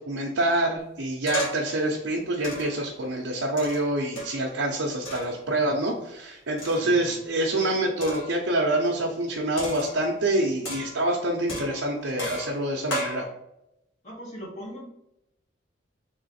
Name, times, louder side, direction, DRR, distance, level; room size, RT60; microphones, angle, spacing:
voice 1, 0.0-13.2, right 1 dB, 70° right, -2 dB, 0.7 m, -26 dB
sound 1, 1.3-1.8 2.4-2.9 3.6-4.5 5.1-5.4 6.6-7.1 8.0-8.4 9.6-10.2 10.6-11.1 11.5-13.2, right 1 dB, 80° left, 1.5 m, -35 dB
voice 2, 6.8-7.2 14.0-14.9, equal, 35° left, -4 dB, 1.4 m, -40 dB
3.6 x 3.1 x 4.1 m, 0.86 s
head